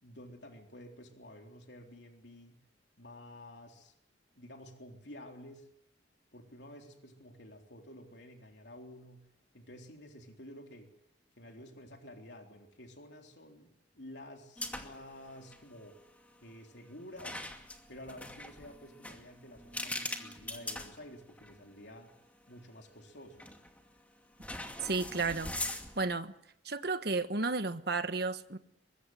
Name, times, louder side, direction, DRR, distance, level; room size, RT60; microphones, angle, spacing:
voice 1, 0.0-2.6 3.0-3.9 4.4-5.7 6.3-9.2 9.5-10.9 11.4-16.1 16.4-17.5 17.9-22.1 22.5-23.5, left 1 dB, 65° left, 3.7 m, -51 dB
sound 1, 14.6-15.1 15.4-15.6 17.2-21.6 22.1-22.2 23.4-23.8 24.4-26.1, left 2 dB, 10° left, 2.4 m, -41 dB
voice 2, 24.8-26.3 26.6-28.6, right 3 dB, 55° right, 1.3 m, -33 dB
23.5 x 22.5 x 7.9 m
head